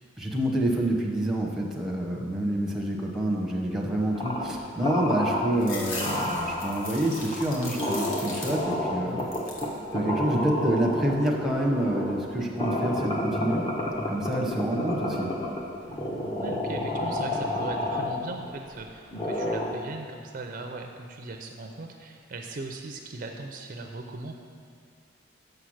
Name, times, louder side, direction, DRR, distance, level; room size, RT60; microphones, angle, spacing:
voice 1, 0.2-9.3 9.9-13.6 14.1-15.3, right 1 dB, ahead, -2 dB, 0.8 m, -27 dB
sound 1, 4.2-4.6 4.8-5.6 6.0-18.7 19.1-19.9, left 1 dB, 25° left, 0.8 m, -30 dB
sound 2, 5.6-8.9 9.2-9.8 10.3-11.0, left 2 dB, 90° left, 1.2 m, -39 dB
voice 2, 16.4-24.3, right 3 dB, 45° right, 3 dB, 0.4 m, -39 dB
6.6 x 5.7 x 6.3 m, 2.2 s
head